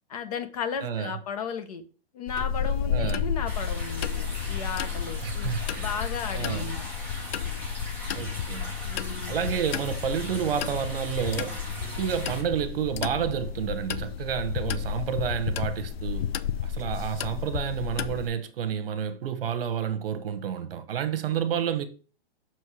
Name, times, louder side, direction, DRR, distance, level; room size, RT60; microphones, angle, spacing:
voice 1, 0.1-1.8 2.1-6.9 8.8-9.3, left 6 dB, 35° left, 0.8 m, -35 dB
voice 2, 0.8-1.2 2.9-3.3 5.2-6.0 6.3-6.7 8.1-8.7 9.3-16.3 16.6-21.8, right 8 dB, 65° right, 1.1 m, -30 dB
sound 1, 2.3-18.3, left 8 dB, 75° left, 0.6 m, -32 dB
sound 2, 3.5-12.4, left 1 dB, 5° left, 0.7 m, -39 dB
6.4 x 4.5 x 4.8 m
hypercardioid pair, 175°, 31 cm